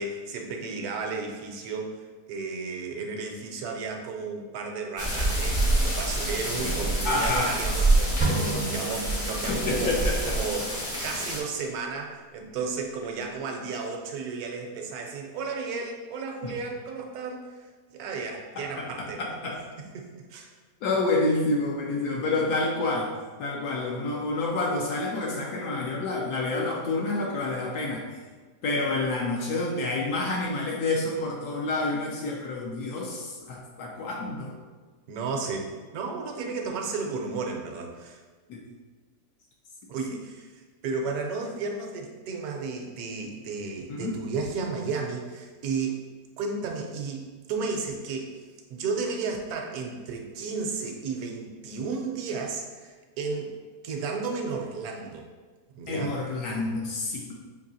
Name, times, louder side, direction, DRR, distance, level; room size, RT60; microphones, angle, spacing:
voice 1, 0.0-10.7 11.0-17.6 17.9-19.3 19.9-20.5 35.1-38.2 39.9-46.0 46.4-48.3 48.7-53.5 53.8-55.3 55.7-56.1, right 4 dB, 75° right, 2 dB, 1.0 m, -33 dB
sound 1, 5.0-11.4, right 1 dB, 30° left, 0.6 m, -27 dB
voice 2, 7.0-7.5 9.5-10.4 16.4-16.5 18.6-19.6 20.8-23.1 23.4-28.1 28.6-34.5 38.5-38.6 43.9-44.2 55.9-57.4, left 2 dB, 75° left, -2 dB, 1.1 m, -28 dB
sound 2, 8.2-9.9, right 2 dB, 55° right, 0.3 m, -30 dB
5.3 x 2.7 x 2.7 m, 1.4 s
omnidirectional pair, 1.7 m